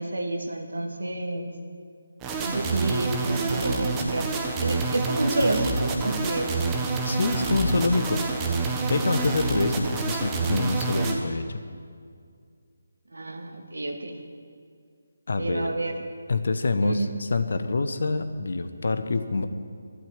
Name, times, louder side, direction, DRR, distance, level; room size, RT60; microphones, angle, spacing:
voice 1, 0.0-1.5 2.4-4.3 4.6-6.5 13.1-14.2 15.4-16.0 16.8-17.1, right 2 dB, 70° right, 4 dB, 2.0 m, -29 dB
sound 1, 2.2-11.1, right 3 dB, 15° right, 1.4 m, -27 dB
voice 2, 7.0-8.2 8.9-11.6 15.3-15.7 16.3-19.5, left 3 dB, 55° left, 10 dB, 1.1 m, -26 dB
12.0 x 12.0 x 9.2 m, 2.2 s
figure-of-eight pair, 150°, 0 cm